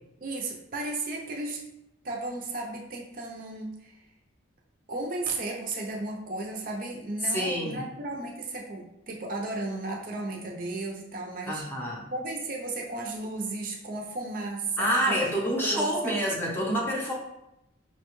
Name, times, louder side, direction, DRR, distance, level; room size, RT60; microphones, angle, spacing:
voice 1, 0.2-1.6 2.0-4.0 4.9-11.6 12.1-15.3 15.5-16.2, right 2 dB, 45° right, 0 dB, 0.5 m, -34 dB
voice 2, 7.3-7.8 11.5-12.1 14.8-17.1, equal, 10° left, -2 dB, 0.7 m, -27 dB
5.6 x 2.2 x 3.0 m, 0.87 s
head